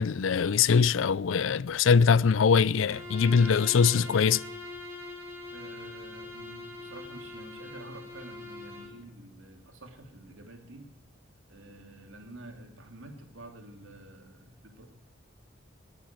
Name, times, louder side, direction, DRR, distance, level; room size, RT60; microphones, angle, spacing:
voice 1, 0.0-4.4, left 6 dB, 80° left, 0.4 m, -22 dB
Bowed string instrument, 2.8-9.0, left 2 dB, 15° right, 2.9 m, -42 dB
voice 2, 5.5-10.9 11.5-14.9, right 1 dB, 80° right, 2.9 m, -48 dB
19.0 x 8.9 x 7.7 m
head